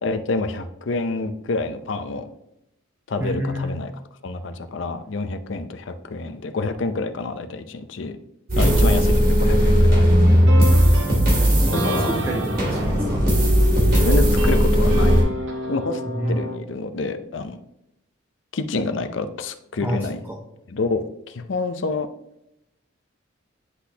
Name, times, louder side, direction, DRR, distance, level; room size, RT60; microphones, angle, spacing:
voice 1, 0.0-2.3 3.1-3.9 4.2-8.1 8.6-10.1 11.7-12.1 13.9-15.2 15.7-16.0 16.3-17.6 18.5-20.2 20.7-22.1, left 3 dB, 70° left, 9 dB, 0.5 m, -27 dB
voice 2, 3.2-3.8 8.5-9.1 11.5-13.3 16.1-16.4 19.8-20.4, equal, 10° right, 0 dB, 0.5 m, -28 dB
sound 1, 8.5-15.2, equal, 50° right, 2.1 m, -17 dB
sound 2, 10.2-16.6, right 1 dB, 70° right, 0.9 m, -31 dB
9.8 x 4.1 x 2.8 m, 0.82 s
head